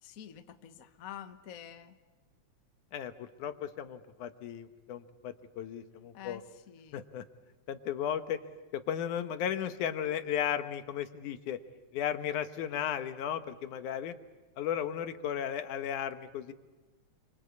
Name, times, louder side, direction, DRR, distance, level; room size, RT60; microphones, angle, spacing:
voice 1, 0.0-1.9 6.1-7.0, left 10 dB, 60° left, 8 dB, 0.8 m, -47 dB
voice 2, 2.9-6.4 6.9-7.2 7.7-8.4 8.7-11.6 11.9-14.2 14.6-16.5, left 9 dB, 85° left, 9 dB, 2.7 m, -35 dB
28.5 x 24.5 x 8.4 m, 1.2 s
omnidirectional pair, 3.5 m